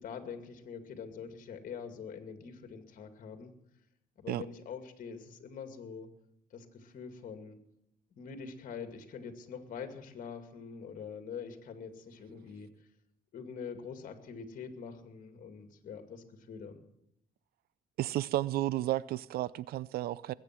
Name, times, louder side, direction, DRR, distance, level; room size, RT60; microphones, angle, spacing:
voice 1, 0.0-3.5 4.2-6.1 6.5-7.6 8.1-12.7 13.3-16.8, left 6 dB, 50° left, 2.4 m, -44 dB
voice 2, 18.0-20.3, right 15 dB, 65° right, 0.4 m, -32 dB
21.0 x 8.7 x 6.0 m
cardioid pair, 110°, 17 cm